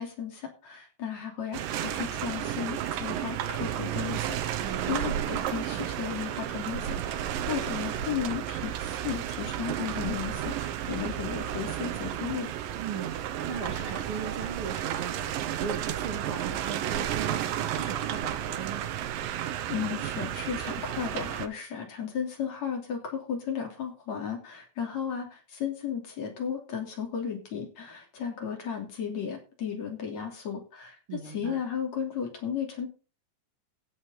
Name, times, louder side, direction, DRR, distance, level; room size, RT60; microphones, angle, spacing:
voice 1, 0.0-12.5 19.7-32.9, left 8 dB, 55° left, 1 dB, 4.1 m, -35 dB
sound 1, 1.5-21.5, right 11 dB, 80° right, 2.7 m, -32 dB
voice 2, 4.6-5.0 12.8-15.3 15.6-18.8 31.1-31.6, right 6 dB, 45° right, 3 dB, 2.3 m, -38 dB
16.0 x 8.2 x 4.1 m, 0.34 s
omnidirectional pair, 4.0 m